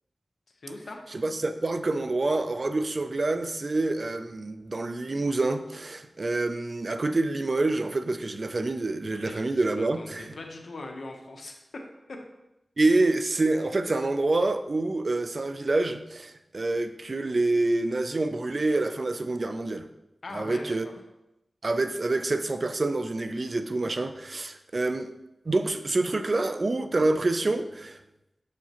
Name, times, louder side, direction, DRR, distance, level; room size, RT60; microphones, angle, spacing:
voice 1, 0.6-1.0 9.2-11.8 12.1-12.2 20.2-20.8, left 2 dB, 75° left, 3 dB, 0.8 m, -41 dB
voice 2, 1.1-10.4 12.8-19.9 20.3-20.9 21.6-25.1 25.5-28.0, right 2 dB, 55° right, 10 dB, 0.4 m, -27 dB
6.7 x 4.9 x 3.0 m, 0.93 s
cardioid pair, 55°, 0 cm